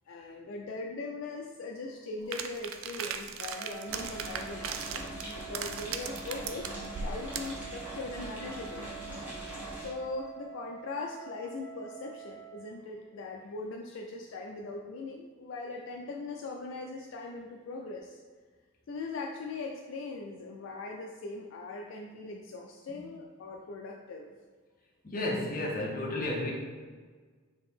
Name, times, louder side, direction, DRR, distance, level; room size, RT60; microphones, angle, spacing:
voice 1, 0.1-6.7 7.0-8.9 9.8-18.2 18.9-24.3, left 3 dB, 65° left, 0 dB, 0.3 m, -40 dB
sound 1, 2.3-7.6, right 6 dB, 70° right, 0.3 m, -38 dB
Wind instrument woodwind instrument, 3.4-12.8, right 11 dB, 30° right, 0.6 m, -47 dB
sound 2, 3.9-9.9, equal, 10° right, 0.9 m, -42 dB
voice 2, 25.0-26.5, left 1 dB, 40° left, -2 dB, 0.7 m, -32 dB
4.2 x 2.7 x 3.5 m, 1.5 s
head